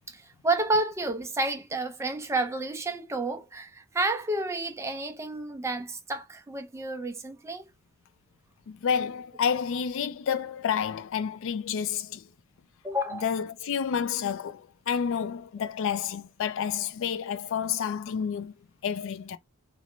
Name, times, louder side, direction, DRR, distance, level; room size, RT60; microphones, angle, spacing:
voice 1, 0.1-7.6 12.8-13.3, right 2 dB, 15° right, 0.4 m, -30 dB
voice 2, 8.7-12.3 13.2-18.5 18.8-19.4, left 7 dB, 65° left, 0.4 m, -29 dB
2.5 x 2.1 x 2.9 m
head